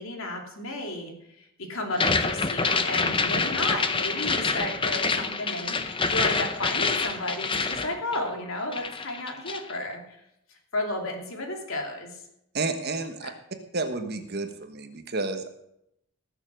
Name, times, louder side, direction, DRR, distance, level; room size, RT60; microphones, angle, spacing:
voice 1, 0.0-10.2 10.5-12.2 13.2-13.3, left 1 dB, 65° left, 2 dB, 2.7 m, -33 dB
sound 1, 1.9-8.5 8.7-9.7, left 4 dB, 25° left, 0.7 m, -27 dB
voice 2, 12.5-13.3 13.7-15.5, right 3 dB, 45° right, 7 dB, 1.3 m, -31 dB
19.0 x 6.9 x 6.2 m, 0.79 s
head